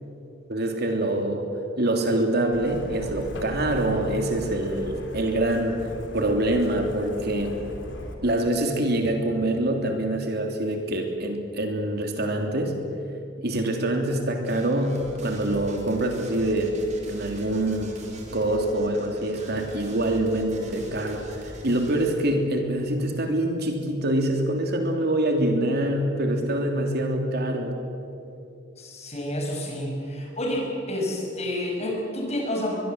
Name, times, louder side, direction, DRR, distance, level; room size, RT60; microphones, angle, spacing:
voice 1, 0.5-1.4 1.8-7.5 8.2-12.7 13.4-16.7 17.1-17.9 18.3-27.8, right 1 dB, 60° right, 3 dB, 3.0 m, -25 dB
Truck, 2.5-8.1, left 1 dB, 85° left, 3.2 m, -39 dB
sound 1, 14.4-22.3, right 1 dB, 40° right, 4.3 m, -43 dB
voice 2, 28.8-32.8, left 1 dB, 35° left, 0 dB, 6.1 m, -29 dB
23.0 x 22.5 x 8.0 m, 2.6 s
head